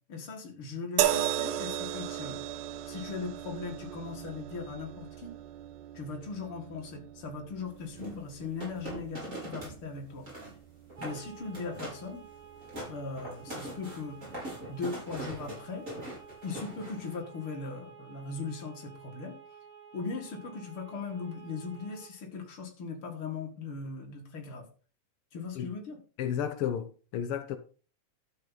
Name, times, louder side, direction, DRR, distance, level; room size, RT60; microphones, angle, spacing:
voice 1, 0.1-2.4 2.9-5.4 5.9-10.3 11.0-12.3 12.9-14.2 14.7-15.9 16.4-19.4 19.9-24.7 25.3-26.0, left 4 dB, 45° left, 2.7 m, -39 dB
sound 1, 1.0-14.3 15.3-15.4, right 11 dB, 75° right, 2.2 m, -37 dB
sound 2, 7.9-9.8 10.1-10.6 10.9-11.2 11.5-12.1 12.4-17.1, right 1 dB, 25° right, 5.1 m, -41 dB
sound 3, 11.0-22.2, right 7 dB, 40° right, 3.7 m, -52 dB
voice 2, 26.2-27.6, left 9 dB, 75° left, 1.3 m, -32 dB
12.0 x 7.3 x 4.0 m
omnidirectional pair, 3.6 m